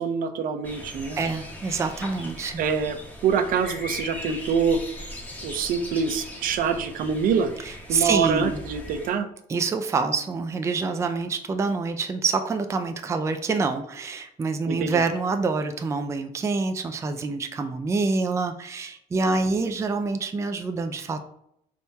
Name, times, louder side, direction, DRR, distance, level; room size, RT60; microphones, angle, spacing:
voice 1, 0.0-1.2 2.6-3.0 3.2-4.8 5.4-7.5 7.9-9.3 14.7-15.0, right 6 dB, 60° right, 8 dB, 0.6 m, -25 dB
sound 1, 0.6-9.1, left 1 dB, 10° left, 0.9 m, -39 dB
voice 2, 1.2-2.6 7.6-8.6 9.5-21.2, right 4 dB, 20° right, 6 dB, 0.4 m, -26 dB
4.2 x 3.5 x 2.8 m, 0.73 s
cardioid pair, 125°, 16 cm